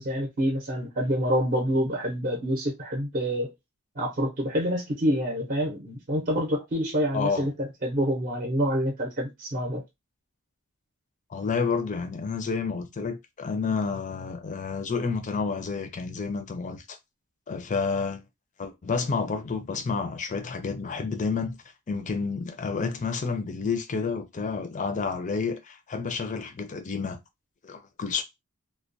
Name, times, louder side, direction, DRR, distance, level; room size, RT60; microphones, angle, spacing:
voice 1, 0.0-3.5 4.0-9.8, equal, 40° right, 0.7 m, -27 dB
voice 2, 7.1-7.5 11.3-17.0 17.5-18.2 18.6-21.6 21.9-27.2 27.6-28.2, left 5 dB, 35° left, 0.5 m, -30 dB
2.2 x 2.2 x 2.5 m
head